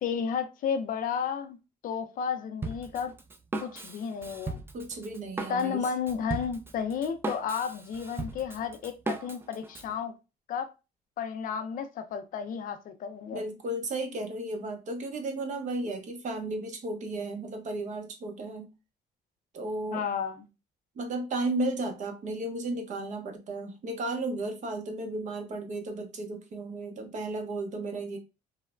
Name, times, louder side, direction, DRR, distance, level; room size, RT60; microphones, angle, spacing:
voice 1, 0.0-1.6 1.8-3.1 3.6-4.6 5.5-10.1 10.5-10.7 11.2-13.4 19.9-20.5, left 7 dB, 55° left, 0.4 m, -32 dB
Drum kit, 2.6-9.9, right 3 dB, 15° right, 0.3 m, -37 dB
voice 2, 4.7-5.9 13.3-18.7 19.5-20.0 21.0-28.2, right 2 dB, 45° right, 0.7 m, -34 dB
3.1 x 2.0 x 2.3 m
cardioid pair, 110°, 17 cm